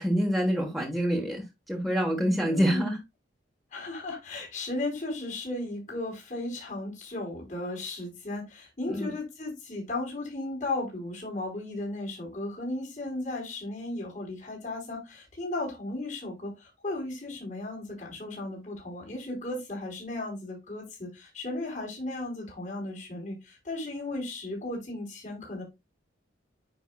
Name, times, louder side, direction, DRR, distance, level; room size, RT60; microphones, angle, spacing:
voice 1, 0.0-3.0 8.9-9.1, equal, ahead, 1.4 m, -26 dB
voice 2, 2.5-3.0 3.7-25.6, left 2 dB, 40° left, 4.3 m, -35 dB
9.1 x 5.4 x 2.4 m
head